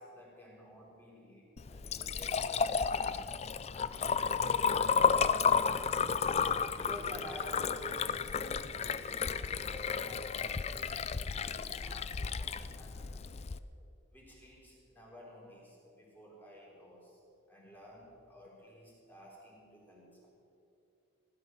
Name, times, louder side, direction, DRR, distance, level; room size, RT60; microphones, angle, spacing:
voice 1, 0.0-3.3 3.7-6.2 6.7-13.4 14.1-17.2 17.5-20.3, equal, 10° left, -4 dB, 3.9 m, -51 dB
Liquid, 1.6-13.6, left 6 dB, 30° left, 0.4 m, -32 dB
16.5 x 12.0 x 6.3 m, 2.7 s
head